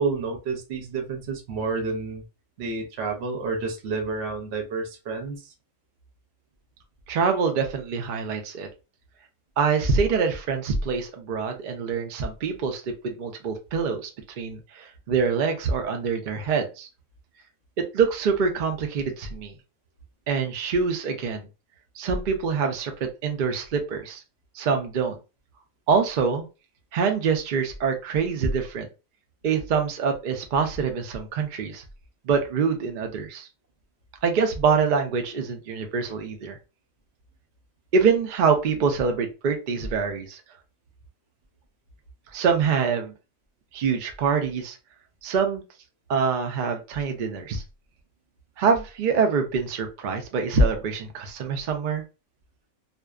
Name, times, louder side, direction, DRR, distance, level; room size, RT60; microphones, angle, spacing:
voice 1, 0.0-2.2 2.6-5.5, right 4 dB, 60° right, 3 dB, 0.8 m, -29 dB
voice 2, 7.1-8.7 9.6-14.1 14.4-16.9 17.9-19.5 20.3-21.5 22.0-24.2 24.5-25.2 25.9-26.4 26.9-28.9 29.4-31.8 32.2-33.5 34.2-36.6 37.9-40.4 42.3-43.1 43.7-44.8 45.2-45.6 46.1-47.6 48.6-52.0, right 5 dB, 80° right, 4 dB, 0.4 m, -25 dB
2.5 x 2.1 x 2.3 m, 0.30 s
omnidirectional pair, 1.4 m